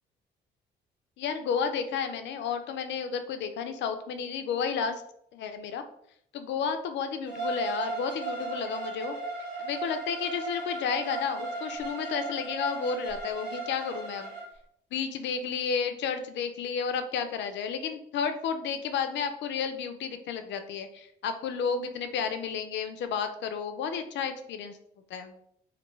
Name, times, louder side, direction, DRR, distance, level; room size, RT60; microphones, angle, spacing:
voice 1, 1.2-5.0 5.3-5.8 6.3-9.2 9.6-14.3 14.9-24.8 25.1-25.4, left 6 dB, 70° left, 8 dB, 0.4 m, -32 dB
Bowed string instrument, 7.3-14.5, right 3 dB, 60° right, 1.3 m, -36 dB
2.3 x 2.2 x 3.1 m, 0.71 s
cardioid pair, 80°, 19 cm